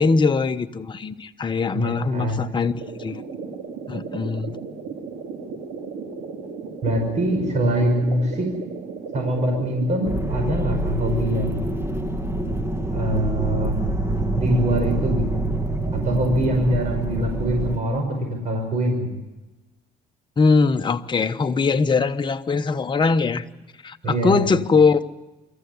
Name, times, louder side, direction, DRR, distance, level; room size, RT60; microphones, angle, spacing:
voice 1, 0.0-2.7 3.0-3.2 3.9-4.6 20.4-23.4 23.8-25.0, left 4 dB, 25° left, 7 dB, 1.1 m, -21 dB
voice 2, 1.7-2.4 6.8-8.5 9.1-11.6 12.9-13.8 14.4-15.2 16.0-19.1 24.0-24.5, right 1 dB, 45° right, 3 dB, 5.8 m, -23 dB
sound 1, 2.8-10.3, right 5 dB, 80° right, 3.5 m, -35 dB
sound 2, 10.0-17.8, right 2 dB, 15° right, 1.6 m, -26 dB
25.5 x 14.5 x 9.6 m, 1.1 s
cardioid pair, 110°, 17 cm